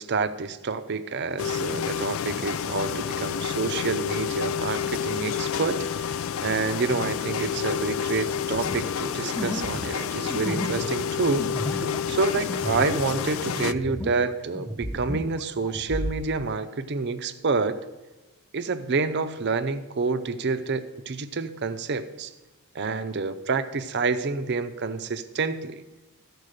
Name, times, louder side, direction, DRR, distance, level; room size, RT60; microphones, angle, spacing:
voice 1, 0.0-5.8 6.1-11.8 12.1-17.8 18.5-22.3 22.7-25.8, right 4 dB, 50° right, 10 dB, 0.6 m, -28 dB
sound 1, 1.4-13.7, left 8 dB, 60° left, 0.3 m, -29 dB
sound 2, 8.5-14.3 14.5-16.2, equal, 5° left, 0.8 m, -33 dB
14.0 x 4.7 x 6.5 m, 1.1 s
head